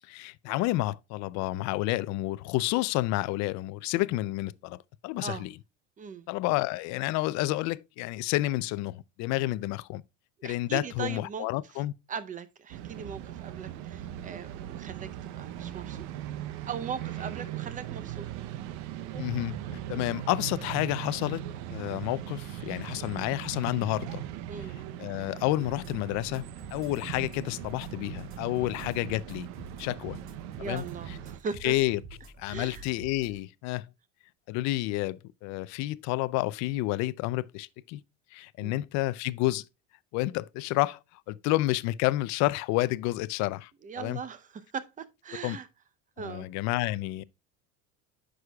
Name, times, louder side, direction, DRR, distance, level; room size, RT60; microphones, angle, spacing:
voice 1, 0.1-5.6 6.3-10.0 10.4-11.9 19.2-24.2 24.6-24.7 25.0-29.5 29.8-30.2 30.6-31.2 31.6-32.0 32.4-33.9 34.5-38.0 38.3-39.7 40.1-41.0 41.3-43.7 44.0-44.2 45.4-45.6 46.2-47.2, left 18 dB, 55° left, 0.5 m, -30 dB
voice 2, 10.4-11.5 12.1-15.1 15.3-16.1 16.7-18.3 24.5-24.8 28.6-28.7 30.6-31.7 32.5-32.8 38.6-38.8 43.8-45.7 46.2-46.5, right 6 dB, 25° right, 0.7 m, -39 dB
sound 1, 12.7-31.4, right 11 dB, 65° right, 0.8 m, -39 dB
sound 2, 25.6-33.4, right 2 dB, 40° right, 1.6 m, -48 dB
9.7 x 6.3 x 2.3 m
cardioid pair, 145°, 33 cm